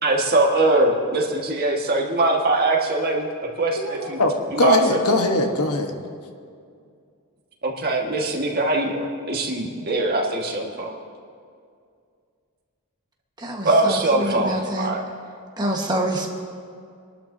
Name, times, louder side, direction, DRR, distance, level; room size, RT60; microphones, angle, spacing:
voice 1, 0.0-3.3 3.6-4.2 4.5-5.0 7.6-10.9 13.6-15.0, right 2 dB, 45° right, -1 dB, 1.8 m, -22 dB
voice 2, 3.8-5.9, left 2 dB, 85° left, 4 dB, 1.3 m, -21 dB
voice 3, 13.4-14.9 15.6-16.3, right 1 dB, 20° right, 0 dB, 1.5 m, -26 dB
26.0 x 12.0 x 2.8 m, 2.3 s
head